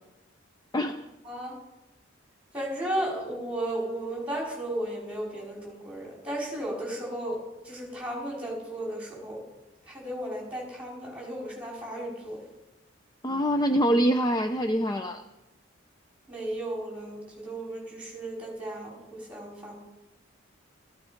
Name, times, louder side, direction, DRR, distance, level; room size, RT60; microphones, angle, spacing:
voice 1, 2.5-7.4 7.6-9.4 9.9-12.4 16.3-19.8, right 1 dB, 5° right, -3 dB, 4.7 m, -34 dB
voice 2, 13.2-15.2, equal, 20° left, 7 dB, 0.5 m, -24 dB
15.0 x 14.0 x 5.1 m, 1.0 s
head